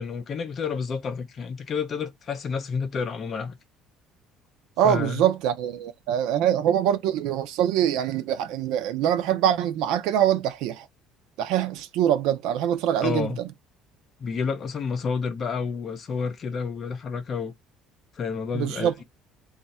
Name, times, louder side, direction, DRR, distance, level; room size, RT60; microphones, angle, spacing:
voice 1, 0.0-3.6 4.8-5.3 13.0-13.4 14.2-17.5 18.1-19.0, left 5 dB, 30° left, 0.6 m, -30 dB
voice 2, 4.8-10.9 11.4-13.3 18.5-18.9, right 10 dB, 70° right, 0.5 m, -24 dB
3.2 x 2.5 x 4.1 m
cardioid pair, 175°, 0 cm